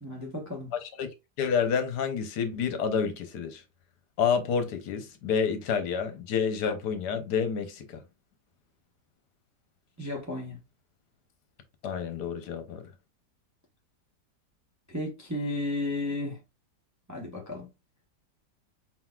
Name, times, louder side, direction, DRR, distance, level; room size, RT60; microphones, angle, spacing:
voice 1, 0.0-0.7 10.0-10.6 14.9-16.4 17.1-17.7, left 2 dB, 15° right, 0.6 m, -33 dB
voice 2, 0.7-1.1 1.4-3.6 4.2-8.0 11.8-12.9, left 6 dB, 75° left, 1.3 m, -29 dB
4.4 x 4.0 x 2.3 m
omnidirectional pair, 1.8 m